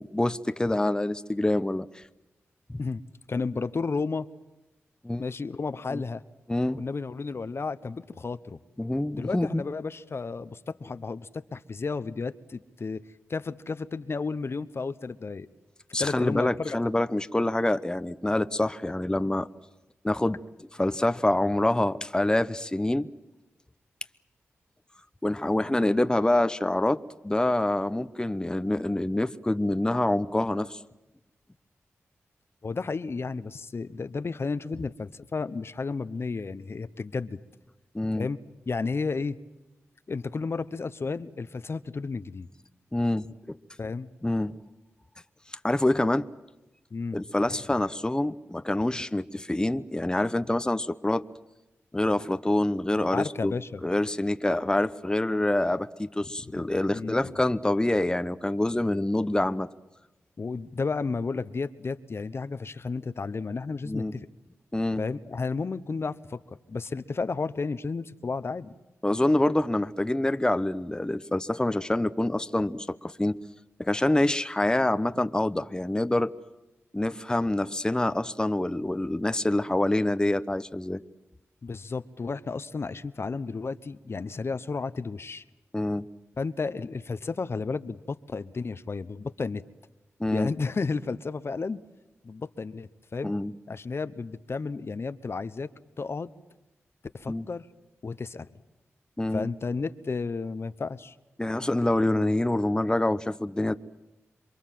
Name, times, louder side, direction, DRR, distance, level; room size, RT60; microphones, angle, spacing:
voice 1, 0.0-2.0 2.7-2.8 5.0-5.2 5.9-6.0 6.5-6.8 8.8-9.6 15.9-19.5 20.0-23.1 25.2-30.8 37.9-38.3 42.9-43.6 44.2-44.6 45.5-46.3 47.1-51.2 51.9-53.5 53.8-59.7 63.9-64.1 64.7-65.0 69.0-73.4 73.8-76.3 76.9-81.0 85.7-86.1 90.2-90.5 93.2-93.5 97.3-97.5 99.2-99.5 101.4-103.8, left 1 dB, 15° left, 12 dB, 0.9 m, -26 dB
voice 2, 3.3-4.3 5.2-6.2 6.8-8.6 9.1-13.0 13.3-15.5 16.0-16.8 32.6-37.4 38.1-38.4 38.7-39.4 40.1-42.5 43.8-44.1 46.9-47.2 53.1-53.8 56.2-56.3 56.9-57.2 60.4-64.3 65.0-66.4 66.7-68.7 81.6-85.4 86.4-89.6 90.3-91.8 92.2-93.3 93.7-95.7 96.0-96.3 97.1-97.7 98.0-98.5 99.3-101.1, left 4 dB, 55° left, 13 dB, 1.0 m, -32 dB
27.5 x 22.5 x 7.6 m, 0.98 s
cardioid pair, 45°, 5 cm